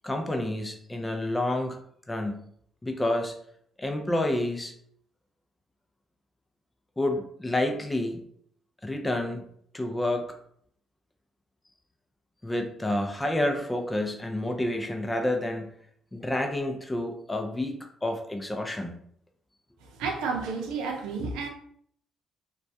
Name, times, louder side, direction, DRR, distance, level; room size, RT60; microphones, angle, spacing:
voice 1, 0.0-1.8 2.1-2.5 2.8-3.3 3.8-4.7 7.0-8.2 8.8-9.4 9.7-10.3 12.4-15.7 16.1-18.9, left 1 dB, 15° left, 4 dB, 0.5 m, -29 dB
voice 2, 19.8-21.5, right 4 dB, 90° right, 3 dB, 0.4 m, -31 dB
2.2 x 2.1 x 2.6 m, 0.65 s
supercardioid pair, 70°, 0 cm